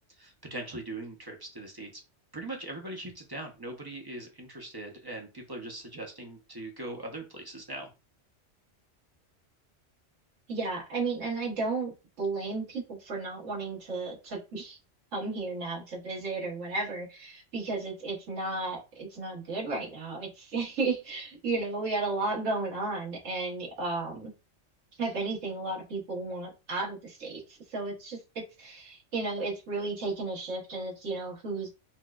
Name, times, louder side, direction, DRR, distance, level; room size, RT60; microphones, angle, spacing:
voice 1, 0.2-1.9 2.3-7.9, right 2 dB, 30° right, 1 dB, 0.4 m, -40 dB
voice 2, 10.5-14.8 15.1-24.3 25.0-31.7, right 3 dB, 85° right, -3 dB, 1.5 m, -33 dB
4.2 x 2.1 x 2.3 m, 0.29 s
omnidirectional pair, 1.3 m